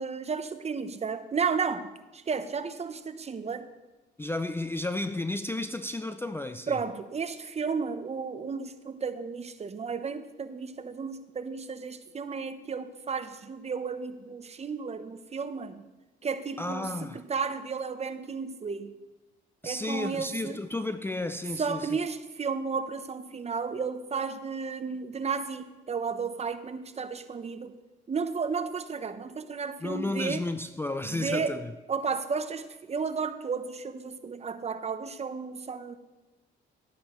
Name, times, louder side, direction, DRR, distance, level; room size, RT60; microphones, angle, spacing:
voice 1, 0.0-1.9 2.1-3.7 6.7-15.8 16.2-18.9 19.6-20.6 21.6-27.8 28.1-30.4 31.1-31.5 31.9-35.9, right 5 dB, 35° right, 0.7 m, -33 dB
voice 2, 4.2-6.8 16.6-17.2 19.6-22.0 29.8-31.7, left 2 dB, 10° left, 0.4 m, -32 dB
12.0 x 9.9 x 3.0 m
cardioid pair, 90°, 20 cm